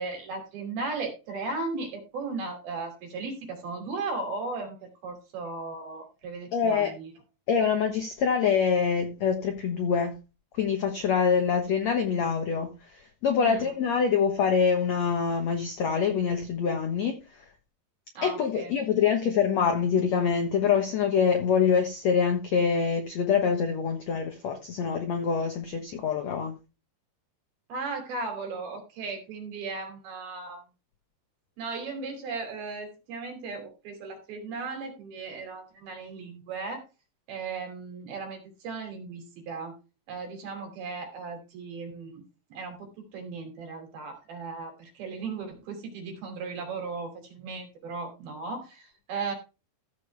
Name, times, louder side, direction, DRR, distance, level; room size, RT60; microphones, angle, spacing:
voice 1, 0.0-7.1 13.4-13.7 18.2-18.8 27.7-30.6 31.6-36.8 37.3-39.7 40.1-42.2 42.5-49.3, right 4 dB, 60° right, 4.5 m, -36 dB
voice 2, 6.5-6.9 7.5-10.1 10.6-17.2 18.2-26.5, left 6 dB, 80° left, 1.5 m, -25 dB
14.5 x 7.1 x 3.4 m
omnidirectional pair, 4.9 m